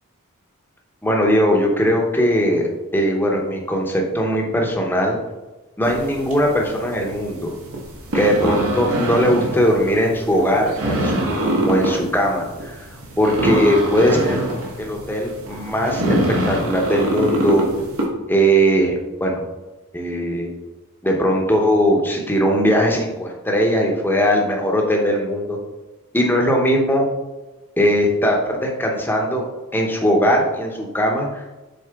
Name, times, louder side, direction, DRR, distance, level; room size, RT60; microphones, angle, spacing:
voice 1, 1.0-5.2 5.8-7.5 8.1-11.4 11.7-12.8 13.2-14.4 14.8-16.0 16.3-17.7 18.3-19.4 19.9-20.5 21.0-25.6 26.1-27.0 27.8-29.5 29.7-31.4, equal, 10° left, 1 dB, 0.8 m, -19 dB
sound 1, 5.8-18.1, right 1 dB, 75° right, 1.3 m, -24 dB
6.5 x 4.2 x 3.5 m, 1.1 s
head